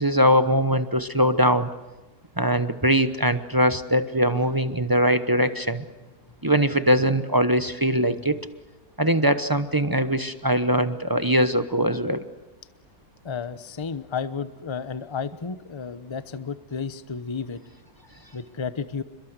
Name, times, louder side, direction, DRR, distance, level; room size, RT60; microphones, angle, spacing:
voice 1, 0.0-1.7 2.4-5.8 6.4-8.4 9.0-12.2, equal, 15° right, 10 dB, 0.8 m, -21 dB
voice 2, 8.0-8.4 13.2-17.6 18.3-19.0, left 5 dB, 25° left, 13 dB, 0.7 m, -32 dB
29.5 x 22.0 x 8.1 m, 1.1 s
omnidirectional pair, 1.6 m